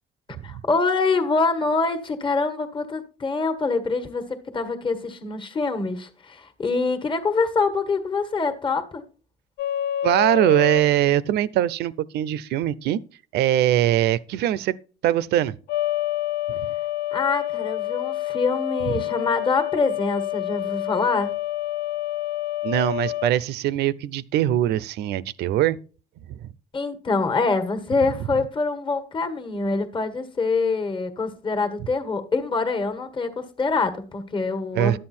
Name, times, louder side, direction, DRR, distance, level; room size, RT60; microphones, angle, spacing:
voice 1, 0.4-9.0 17.1-21.3 26.7-35.0, left 4 dB, 30° left, 1.5 m, -25 dB
sound 1, 9.6-10.9 15.7-23.3, left 13 dB, 75° left, 0.7 m, -27 dB
voice 2, 10.0-13.0 13.3-14.8 15.0-15.5 18.9-19.0 22.6-25.8 26.3-26.5 34.7-35.0, right 13 dB, 75° right, 0.6 m, -22 dB
11.5 x 7.6 x 4.3 m
cardioid pair, 110°, 17 cm